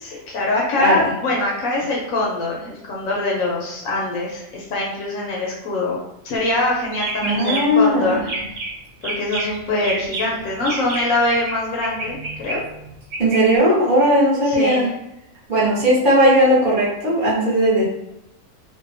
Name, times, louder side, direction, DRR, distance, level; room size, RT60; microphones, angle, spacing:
voice 1, 0.0-6.0 6.2-8.3 9.0-12.6 14.4-14.9, left 2 dB, 75° left, -3 dB, 1.0 m, -23 dB
voice 2, 0.8-1.1 7.2-8.2 13.2-14.9 15.5-17.8, equal, 45° right, -7 dB, 0.8 m, -17 dB
sound 1, 6.4-6.6 6.9-7.9 8.2-8.7 9.0-11.5 11.8-13.4, right 2 dB, 65° right, 1.1 m, -29 dB
2.7 x 2.1 x 2.5 m, 0.86 s
omnidirectional pair, 1.5 m